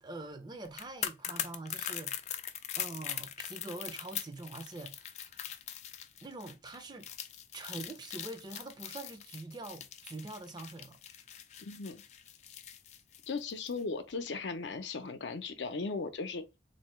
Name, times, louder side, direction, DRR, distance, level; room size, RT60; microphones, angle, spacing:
voice 1, 0.0-2.1 2.8-5.3 6.2-7.1 7.5-11.0, right 2 dB, 25° right, 0.4 m, -44 dB
sound 1, 0.6-13.8 14.1-14.3, left 10 dB, 40° left, 0.3 m, -41 dB
voice 2, 11.6-12.0 13.3-16.4, left 4 dB, 85° left, 0.6 m, -37 dB
3.7 x 2.7 x 3.1 m
head